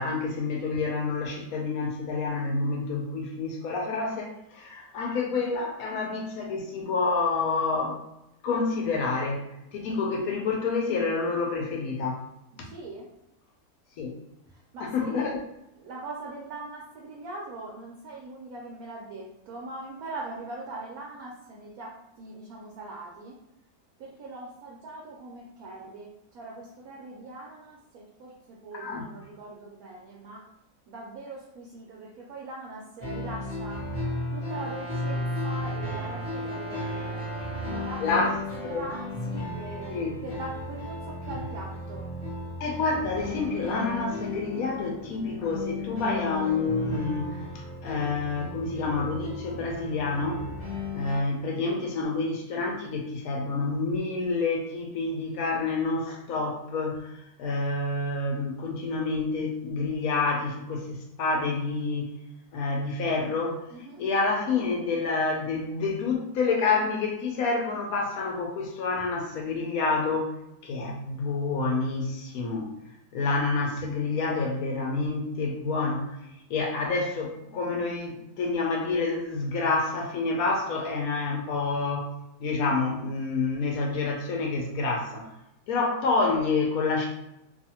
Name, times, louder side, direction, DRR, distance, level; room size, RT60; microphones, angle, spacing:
voice 1, 0.0-8.0 8.4-9.4 9.7-12.2 14.0-14.2 14.8-15.4 28.7-29.0 38.0-38.3 38.6-38.9 39.9-40.1 42.6-50.4 50.9-62.2 62.5-63.6 64.0-70.3 70.6-72.7 73.1-76.2 76.5-82.1 82.4-85.3 85.7-87.1, left 3 dB, 70° left, 0 dB, 0.9 m, -28 dB
voice 2, 12.7-13.1 14.5-15.3 15.8-23.3 24.0-30.4 30.9-33.8 34.3-42.1 63.7-64.0, right 2 dB, 70° right, -3 dB, 1.0 m, -41 dB
sound 1, 33.0-51.2, left 2 dB, 30° left, 0.9 m, -35 dB
Brass instrument, 34.4-38.4, right 1 dB, 30° right, 0.7 m, -41 dB
2.6 x 2.5 x 2.7 m, 0.85 s
omnidirectional pair, 1.7 m